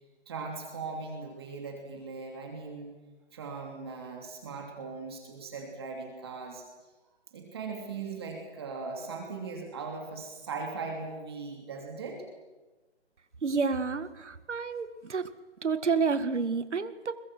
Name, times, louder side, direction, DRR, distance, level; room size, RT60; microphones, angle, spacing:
voice 1, 0.3-2.9 3.3-6.6 7.3-12.2, right 4 dB, 20° right, 2 dB, 3.0 m, -39 dB
voice 2, 13.4-15.3 15.6-17.2, right 5 dB, 80° right, 11 dB, 2.2 m, -29 dB
30.0 x 23.5 x 6.2 m, 1.2 s
hypercardioid pair, 180°, 34 cm